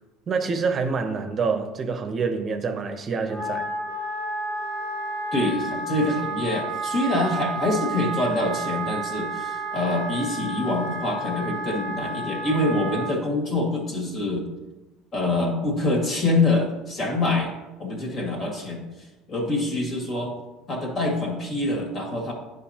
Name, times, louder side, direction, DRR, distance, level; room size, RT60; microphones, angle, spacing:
voice 1, 0.3-3.7, right 5 dB, 40° right, 0.8 m, -26 dB
Wind instrument woodwind instrument, 3.2-13.1, right 1 dB, 60° left, 2.0 m, -31 dB
voice 2, 5.3-14.4 15.1-17.5 17.8-18.8 19.3-20.3 20.7-22.3, left 2 dB, 45° left, 2.1 m, -25 dB
10.0 x 5.1 x 2.9 m
supercardioid pair, 90°, 0 cm